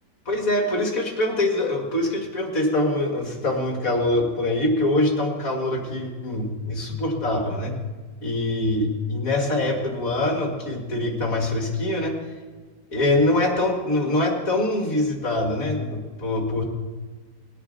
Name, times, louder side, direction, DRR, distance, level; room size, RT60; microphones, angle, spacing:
voice 1, 0.3-7.7 8.2-12.2 12.9-16.6, left 1 dB, 45° left, 1 dB, 2.2 m, -24 dB
20.0 x 11.0 x 4.0 m, 1.4 s
omnidirectional pair, 2.1 m